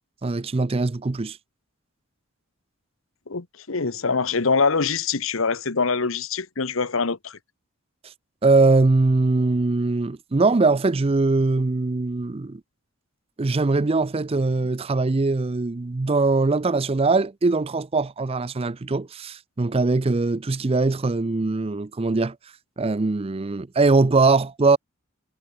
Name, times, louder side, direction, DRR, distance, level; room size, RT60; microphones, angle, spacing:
voice 1, 0.2-1.4 8.4-12.6 13.4-22.4 22.8-24.8, right 3 dB, 25° right, 0.5 m, -21 dB
voice 2, 3.3-7.4, left 4 dB, 65° left, 1.1 m, -24 dB
head